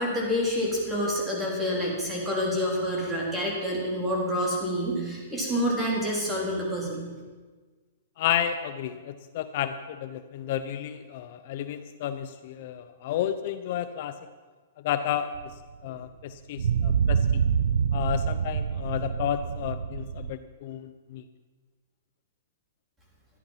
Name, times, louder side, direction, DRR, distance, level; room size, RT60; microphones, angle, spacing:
voice 1, 0.0-7.0, equal, 10° right, -4 dB, 3.9 m, -28 dB
voice 2, 8.2-14.1 14.8-15.3 15.8-17.2 17.9-21.2, left 10 dB, 50° left, 10 dB, 0.7 m, -31 dB
sound 1, 15.3-15.5 16.6-20.3, right 7 dB, 80° right, 0.4 m, -26 dB
13.5 x 10.5 x 5.8 m, 1.4 s
hypercardioid pair, 145°, 0 cm